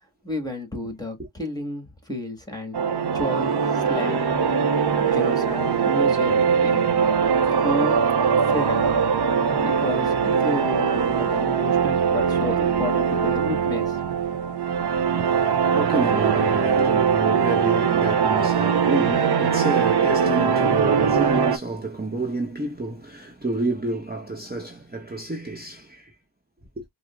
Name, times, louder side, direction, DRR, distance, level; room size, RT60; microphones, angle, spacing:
voice 1, 0.2-2.8 3.1-4.3 5.0-6.9 7.6-8.0 8.5-8.9 9.6-14.0, left 1 dB, 10° left, 1.5 m, -31 dB
sound 1, 2.7-21.6, right 6 dB, 60° right, 0.6 m, -21 dB
voice 2, 14.9-26.1, right 2 dB, 20° right, 1.0 m, -29 dB
4.8 x 2.0 x 2.3 m
wide cardioid pair, 50°, 45 cm